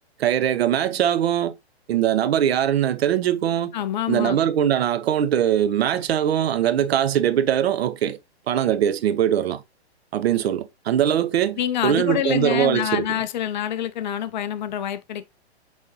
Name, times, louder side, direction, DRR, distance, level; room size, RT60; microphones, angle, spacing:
voice 1, 0.2-1.5 1.9-3.7 4.1-8.2 8.5-9.6 10.1-13.1, right 10 dB, 70° right, 0.6 m, -21 dB
voice 2, 3.7-4.4 11.6-15.2, left 10 dB, 45° left, 0.4 m, -26 dB
5.4 x 3.2 x 2.8 m
hypercardioid pair, 140°, 33 cm